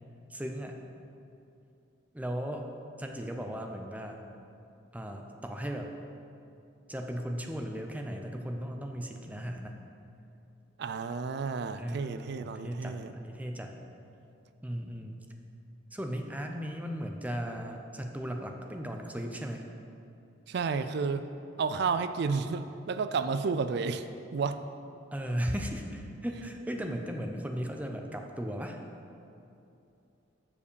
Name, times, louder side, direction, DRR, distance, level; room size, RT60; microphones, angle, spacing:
voice 1, 0.3-0.8 2.1-2.7 3.0-4.2 4.9-5.9 6.9-9.7 11.8-13.7 14.6-15.3 15.9-19.7 25.1-28.8, equal, 10° right, 3 dB, 0.6 m, -36 dB
voice 2, 10.8-13.1 20.5-21.2 21.6-24.0 24.3-24.6 26.8-26.9, right 5 dB, 60° right, 11 dB, 0.4 m, -31 dB
6.9 x 5.1 x 6.8 m, 2.7 s
head